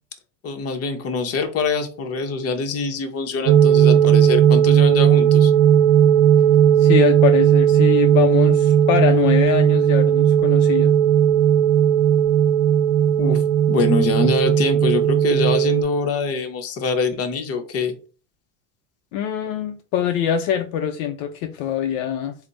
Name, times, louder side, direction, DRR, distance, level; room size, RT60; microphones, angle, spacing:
voice 1, 0.4-5.5 13.2-17.9, left 4 dB, 40° left, 0.8 m, -24 dB
sound 1, 3.5-15.8, right 9 dB, 65° right, 0.7 m, -16 dB
voice 2, 6.8-10.9 19.1-22.4, left 10 dB, 65° left, 0.5 m, -23 dB
3.4 x 2.1 x 3.9 m
supercardioid pair, 110°, 38 cm